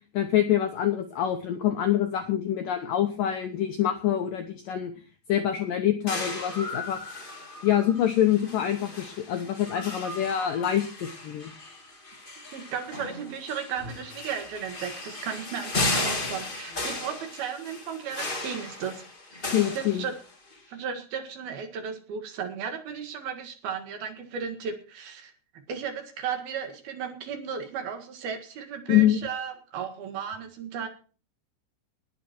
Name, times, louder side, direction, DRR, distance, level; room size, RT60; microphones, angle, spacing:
voice 1, 0.1-4.9 5.3-7.0 7.6-11.5 19.5-20.0 28.9-29.2, left 11 dB, 75° left, 6 dB, 2.1 m, -25 dB
sound 1, 6.1-20.5, left 2 dB, 60° left, 0.5 m, -35 dB
voice 2, 12.5-19.0 19.3-19.5 19.7-20.1 20.7-25.3 25.7-30.9, right 7 dB, 60° right, 6 dB, 3.5 m, -35 dB
19.5 x 8.4 x 4.4 m, 0.38 s
omnidirectional pair, 5.2 m